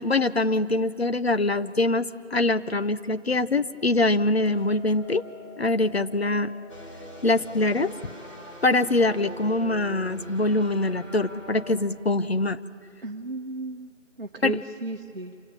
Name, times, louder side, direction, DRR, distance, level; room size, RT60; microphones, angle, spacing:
voice 1, 0.0-5.2 5.6-6.5 7.2-8.1 8.6-12.6 14.4-14.6, left 2 dB, 55° left, 12 dB, 0.7 m, -24 dB
Hammer, 4.4-10.7, left 5 dB, 5° left, 7.6 m, -50 dB
sound 1, 6.7-11.7, equal, 25° left, 2.7 m, -42 dB
voice 2, 13.0-13.9 14.2-15.4, right 1 dB, 50° right, 3 dB, 1.0 m, -34 dB
26.5 x 16.5 x 8.9 m, 2.6 s
figure-of-eight pair, 180°, 38 cm